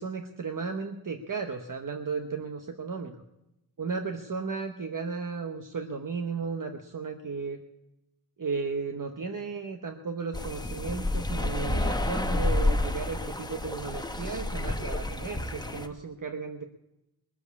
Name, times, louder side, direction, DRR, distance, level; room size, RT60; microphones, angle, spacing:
voice 1, 0.0-3.2 3.8-7.6 8.4-16.6, right 5 dB, 55° right, 6 dB, 1.0 m, -34 dB
sound 1, 10.3-15.9, left 2 dB, 10° left, 1.0 m, -29 dB
20.0 x 7.6 x 8.3 m, 0.92 s
wide cardioid pair, 105°, 38 cm